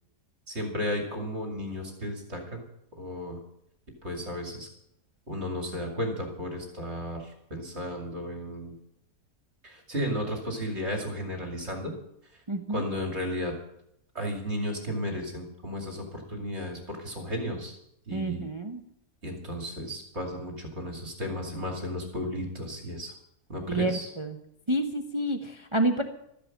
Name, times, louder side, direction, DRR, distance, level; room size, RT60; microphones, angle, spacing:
voice 1, 0.5-2.6 2.9-3.4 4.0-4.7 5.3-8.7 9.6-11.9 12.7-13.6 14.1-17.8 18.1-18.5 19.2-23.1 23.5-24.1, equal, 45° right, 1 dB, 2.9 m, -34 dB
voice 2, 12.5-12.9 18.1-18.8 23.7-24.4 24.7-26.0, right 1 dB, 25° right, 5 dB, 0.8 m, -28 dB
13.5 x 10.5 x 7.3 m, 0.77 s
omnidirectional pair, 1.6 m